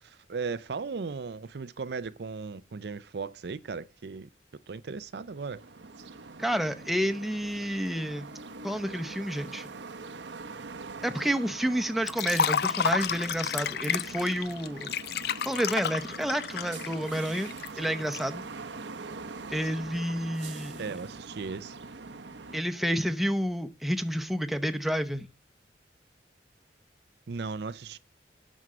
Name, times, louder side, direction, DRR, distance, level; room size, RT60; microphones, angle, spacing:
voice 1, 0.0-4.3 4.7-5.6 20.8-21.8 27.3-28.0, right 4 dB, 65° right, 0.5 m, -37 dB
sound 1, 5.2-22.6, right 4 dB, 85° right, 0.9 m, -43 dB
voice 2, 6.4-8.3 8.6-9.7 11.0-14.9 15.5-17.5 17.8-18.4 19.5-20.9 22.5-25.3, equal, ahead, 0.8 m, -30 dB
Liquid, 12.1-18.2, left 7 dB, 60° left, 0.5 m, -31 dB
9.3 x 6.3 x 7.8 m
head